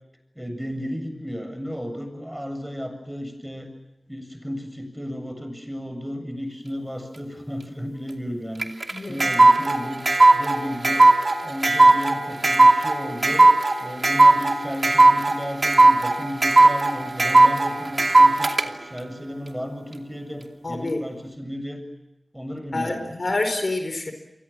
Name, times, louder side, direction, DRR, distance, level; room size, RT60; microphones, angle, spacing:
voice 1, 0.4-3.7 4.1-8.7 9.1-10.0 10.3-11.1 11.4-13.5 13.8-21.8 22.3-23.1, equal, 5° right, 7 dB, 7.7 m, -33 dB
sound 1, 8.6-18.6, right 2 dB, 55° right, 2.6 m, -16 dB
voice 2, 20.6-21.0 22.7-24.1, left 2 dB, 65° left, 7 dB, 4.6 m, -27 dB
30.0 x 23.5 x 7.4 m, 0.91 s
cardioid pair, 45°, 0 cm